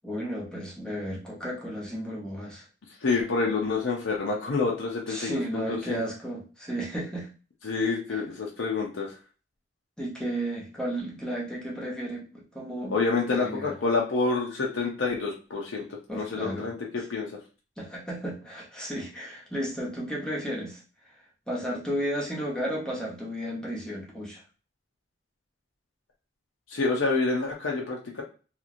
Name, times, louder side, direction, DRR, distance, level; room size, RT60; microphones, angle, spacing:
voice 1, 0.0-2.6 5.1-7.3 8.1-8.2 10.0-12.9 13.3-13.8 16.1-16.7 17.0-17.1 17.8-20.8 21.5-24.4, equal, 5° left, -4 dB, 0.7 m, -33 dB
voice 2, 3.0-6.0 7.6-9.1 12.9-15.8 16.1-17.4 26.7-28.2, left 4 dB, 75° left, -1 dB, 0.5 m, -28 dB
2.9 x 2.4 x 2.5 m, 0.36 s
head